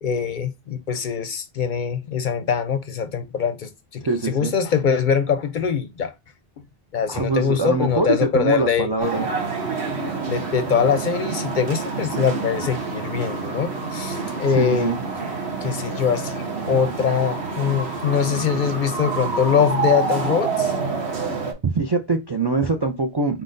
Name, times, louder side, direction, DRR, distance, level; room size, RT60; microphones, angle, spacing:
voice 1, 0.0-6.1 6.9-8.9 10.3-14.9 15.6-20.7, left 7 dB, 55° left, 0.6 m, -23 dB
voice 2, 4.0-4.5 7.1-9.3 14.5-15.0 21.6-23.4, right 3 dB, 45° right, 0.3 m, -23 dB
sound 1, 9.0-21.5, right 4 dB, 75° right, 1.4 m, -27 dB
4.3 x 3.8 x 2.5 m
omnidirectional pair, 1.1 m